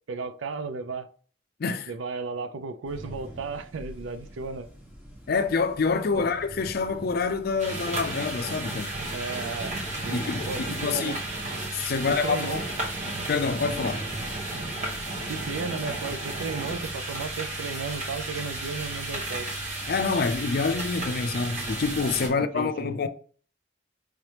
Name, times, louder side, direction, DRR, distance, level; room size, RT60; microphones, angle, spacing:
voice 1, 0.1-1.1 1.9-4.7 6.1-6.2 9.1-9.8 10.0-11.2 11.9-12.6 15.3-19.5 22.2-22.9, right 4 dB, 80° right, 0.4 m, -34 dB
voice 2, 1.6-1.9 5.3-8.9 10.1-11.2 11.7-12.6 13.3-14.0 19.9-23.1, left 4 dB, 50° left, 0.4 m, -27 dB
sound 1, 2.8-22.3, equal, 10° right, 1.1 m, -45 dB
sound 2, 7.6-22.3, right 2 dB, 40° right, 1.1 m, -33 dB
4.9 x 2.9 x 3.2 m
head